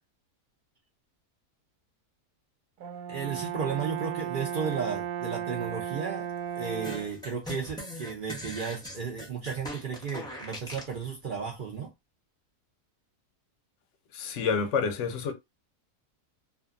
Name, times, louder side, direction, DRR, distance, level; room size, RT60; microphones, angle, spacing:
Brass instrument, 2.8-7.2, right 9 dB, 90° right, 1.1 m, -35 dB
voice 1, 3.1-6.3 6.6-11.9, right 6 dB, 60° right, 0.5 m, -34 dB
sound 1, 6.8-11.0, equal, 5° left, 0.4 m, -40 dB
voice 2, 14.1-15.3, left 5 dB, 65° left, 0.8 m, -28 dB
2.5 x 2.5 x 2.4 m
omnidirectional pair, 1.6 m